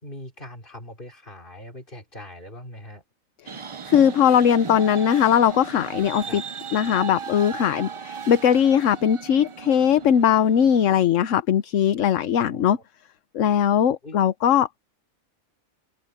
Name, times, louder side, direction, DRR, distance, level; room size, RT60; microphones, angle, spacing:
voice 1, 0.0-3.0 6.3-6.4 12.5-12.8 14.0-14.2, left 1 dB, 35° left, 4.2 m, -41 dB
voice 2, 3.5-6.4 6.7-12.8 13.3-14.8, left 9 dB, 65° left, 1.1 m, -20 dB
sound 1, 3.5-11.0, right 6 dB, 55° right, 0.3 m, -37 dB
omnidirectional pair, 1.5 m